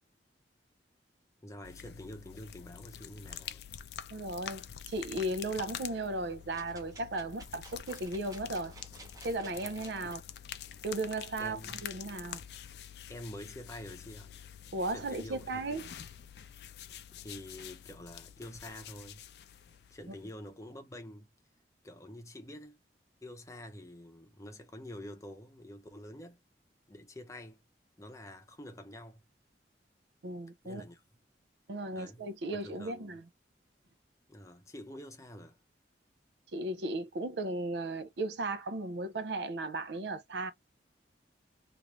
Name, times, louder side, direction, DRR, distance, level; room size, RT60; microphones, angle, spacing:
voice 1, 1.4-3.6 10.0-10.1 11.4-11.8 13.1-14.3 14.9-16.1 17.1-19.2 19.9-21.3 21.8-22.8 23.2-26.4 26.9-27.6 28.0-29.2 30.6-31.0 31.9-32.2 32.5-33.1 34.3-35.6, left 1 dB, 20° left, 0.7 m, -47 dB
sound 1, 1.6-20.5, left 9 dB, 65° left, 0.4 m, -47 dB
voice 2, 4.1-8.7 9.2-10.2 10.8-12.4 14.7-15.8 30.2-30.8 31.7-33.2 36.5-40.5, right 2 dB, 70° right, 0.5 m, -36 dB
sound 2, 6.5-10.2 10.7-10.8, right 2 dB, 20° right, 0.8 m, -53 dB
3.1 x 2.5 x 3.0 m
head